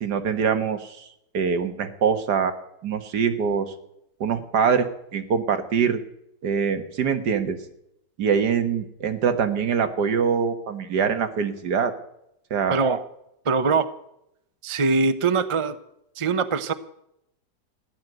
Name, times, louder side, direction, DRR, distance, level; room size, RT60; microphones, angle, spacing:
voice 1, 0.0-1.1 1.3-2.5 2.8-3.7 4.2-4.9 5.1-6.0 6.4-7.6 8.2-11.9 12.5-12.8, right 6 dB, 65° right, 8 dB, 1.9 m, -23 dB
voice 2, 12.7-13.0 13.4-13.9 14.6-15.8 16.2-16.7, right 4 dB, 50° right, 11 dB, 0.3 m, -22 dB
15.0 x 11.0 x 8.0 m, 0.79 s
omnidirectional pair, 1.9 m